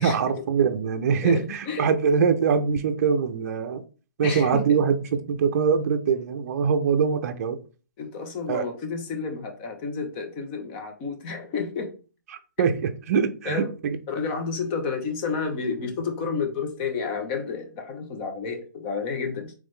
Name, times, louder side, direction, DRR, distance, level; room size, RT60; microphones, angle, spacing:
voice 1, 0.0-3.8 4.2-7.6 8.5-8.6 12.6-14.0, right 6 dB, 50° right, 0.5 m, -23 dB
voice 2, 1.2-1.9 4.2-4.9 8.0-11.9 13.4-13.7 14.1-19.5, left 5 dB, 30° left, 0.8 m, -31 dB
3.7 x 3.1 x 3.2 m
hypercardioid pair, 150°, 11 cm